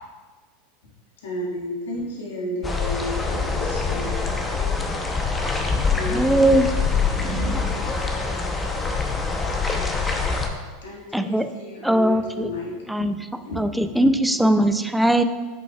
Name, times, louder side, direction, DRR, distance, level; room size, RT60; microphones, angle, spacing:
voice 1, 1.2-4.2 5.7-6.3 10.8-12.8 13.4-13.6 13.9-14.4, left 1 dB, 80° left, 1.8 m, -32 dB
sound 1, 2.6-10.5, left 4 dB, 15° left, 0.8 m, -25 dB
voice 2, 4.3-6.2 7.1-8.4, right 3 dB, 30° right, 1.2 m, -38 dB
voice 3, 6.1-6.7 11.1-11.5 11.8-12.5 12.9-13.1 13.6-15.2, right 1 dB, 5° right, 0.4 m, -20 dB
8.3 x 5.2 x 2.4 m
hypercardioid pair, 100°, 0 cm